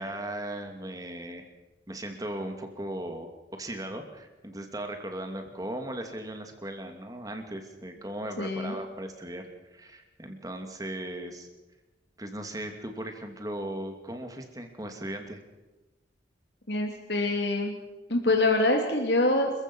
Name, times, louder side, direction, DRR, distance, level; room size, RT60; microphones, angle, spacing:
voice 1, 0.0-1.5 1.9-11.5 12.2-15.4, right 1 dB, 20° right, 5 dB, 2.7 m, -37 dB
voice 2, 8.4-8.8 16.7-17.7 18.1-19.5, left 2 dB, 75° left, 2 dB, 3.1 m, -25 dB
28.0 x 15.5 x 6.3 m, 1.1 s
head